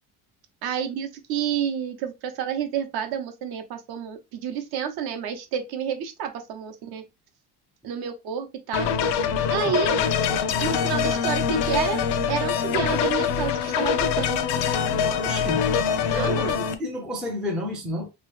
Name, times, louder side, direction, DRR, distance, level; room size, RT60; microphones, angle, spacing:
voice 1, 0.6-7.0 7.8-8.9 9.5-10.0 10.6-14.5 16.1-16.6, right 8 dB, 65° right, 0.8 m, -30 dB
sound 1, 8.7-16.7, left 7 dB, 75° left, 0.6 m, -24 dB
voice 2, 15.2-15.6 16.1-18.1, left 1 dB, ahead, 0.3 m, -31 dB
3.0 x 2.8 x 3.0 m
cardioid pair, 170°, 41 cm